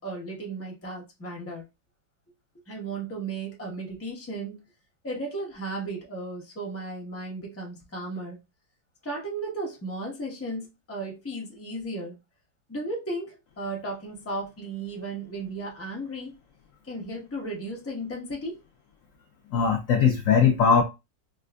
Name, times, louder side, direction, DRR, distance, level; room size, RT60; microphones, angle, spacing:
voice 1, 0.0-1.6 2.7-4.6 5.0-8.4 9.0-12.2 12.7-16.3 16.8-18.6, right 2 dB, 10° left, 0.7 m, -35 dB
voice 2, 19.5-20.8, left 6 dB, 70° left, 0.7 m, -20 dB
4.4 x 2.4 x 2.2 m
omnidirectional pair, 1.9 m